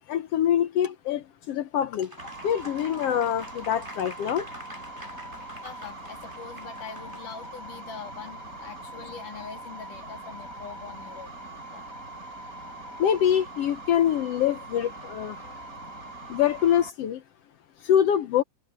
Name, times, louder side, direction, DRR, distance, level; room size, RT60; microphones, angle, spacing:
voice 1, 0.1-2.1 2.4-4.5 13.0-15.4 16.3-17.2 17.8-18.4, left 10 dB, 70° left, 1.5 m, -24 dB
Applause, 2.0-7.6, equal, 5° right, 4.8 m, -46 dB
sound 1, 2.2-16.9, right 2 dB, 25° left, 4.0 m, -42 dB
voice 2, 5.6-11.3 11.7-11.8, left 6 dB, 90° left, 3.9 m, -43 dB
omnidirectional pair, 3.5 m